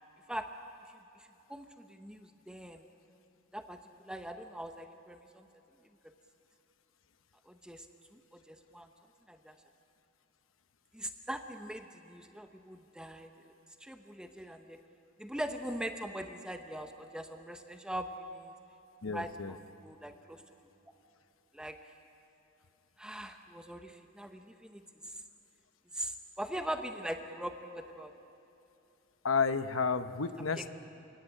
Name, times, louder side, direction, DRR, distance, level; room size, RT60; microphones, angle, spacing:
voice 1, 1.5-2.8 3.5-3.8 4.0-5.5 7.5-7.9 8.1-8.9 9.3-9.5 10.9-13.3 13.8-14.8 15.2-18.5 19.1-20.4 21.5-21.8 23.0-24.8 25.9-28.1 30.5-30.7, right 1 dB, 5° right, 6 dB, 0.9 m, -41 dB
voice 2, 19.0-19.5 29.2-30.7, left 5 dB, 85° left, 11 dB, 1.0 m, -31 dB
28.0 x 17.0 x 9.9 m, 2.9 s
head